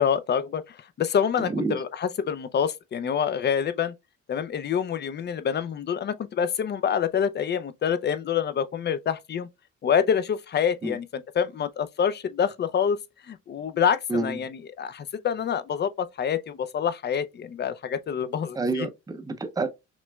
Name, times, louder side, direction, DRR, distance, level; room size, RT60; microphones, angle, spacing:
voice 1, 0.0-3.9 4.3-9.5 9.8-13.0 13.3-18.9, left 8 dB, 35° left, 0.4 m, -26 dB
voice 2, 1.4-1.8 10.8-11.0 14.1-14.4 18.5-19.7, right 3 dB, 10° right, 0.5 m, -28 dB
6.0 x 2.1 x 2.3 m
cardioid pair, 90°, 30 cm